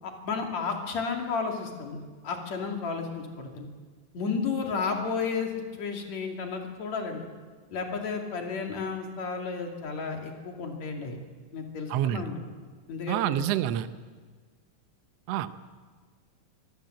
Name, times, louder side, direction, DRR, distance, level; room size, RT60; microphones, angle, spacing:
voice 1, 0.0-2.0 2.2-3.7 4.1-5.5 5.8-7.3 7.7-11.2 11.5-12.4 12.9-13.4, left 5 dB, 55° left, 2 dB, 3.6 m, -32 dB
voice 2, 11.9-12.2 13.1-13.9 15.3-15.5, right 12 dB, 80° right, 12 dB, 1.4 m, -27 dB
24.5 x 16.5 x 7.8 m, 1.5 s
omnidirectional pair, 4.0 m